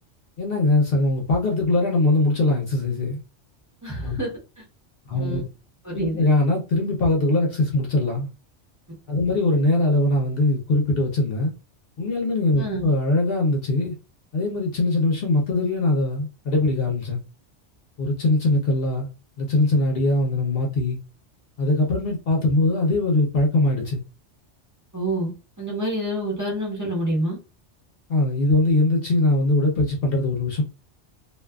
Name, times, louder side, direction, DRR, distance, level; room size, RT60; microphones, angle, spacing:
voice 1, 0.4-3.2 4.0-4.2 5.1-5.4 5.9-8.3 9.1-11.5 12.0-13.9 14.3-17.2 18.0-19.1 19.4-21.0 21.6-24.0 28.1-30.6, left 2 dB, 60° left, 0.8 m, -21 dB
voice 2, 3.8-4.3 4.6-4.7 5.1-5.4 5.8-6.2 12.6-12.9 24.9-25.3 25.6-27.4, right 1 dB, 15° right, 0.9 m, -27 dB
2.6 x 2.3 x 2.2 m
omnidirectional pair, 1.2 m